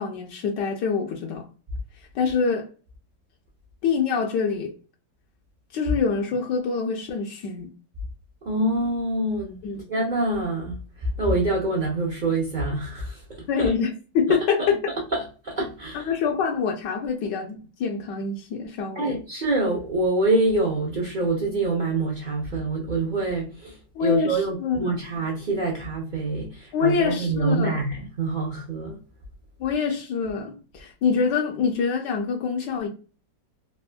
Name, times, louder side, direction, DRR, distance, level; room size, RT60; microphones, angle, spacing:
voice 1, 0.0-1.5 2.1-2.7 3.8-4.7 5.7-7.7 9.6-9.9 13.5-14.8 15.9-19.2 23.9-25.0 26.7-27.8 29.6-32.9, left 5 dB, 80° left, 1.3 m, -25 dB
voice 2, 8.4-9.6 9.9-13.7 14.6-16.1 18.9-29.0, right 2 dB, 65° right, 0.4 m, -26 dB
3.5 x 2.3 x 2.2 m
omnidirectional pair, 1.9 m